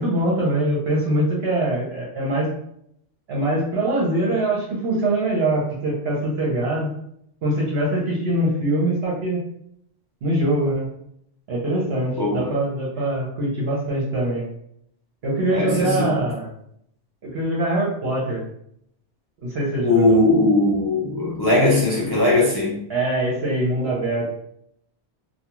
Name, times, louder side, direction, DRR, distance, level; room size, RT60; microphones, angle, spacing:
voice 1, 0.0-2.5 3.3-6.9 7.4-9.4 10.2-10.9 11.5-14.4 15.2-16.5 17.2-18.4 19.4-20.2 22.9-24.3, right 1 dB, 60° right, -5 dB, 0.9 m, -23 dB
voice 2, 15.5-16.2 19.8-22.8, left 2 dB, 40° left, -6 dB, 0.3 m, -19 dB
2.3 x 2.2 x 2.9 m, 0.71 s
omnidirectional pair, 1.2 m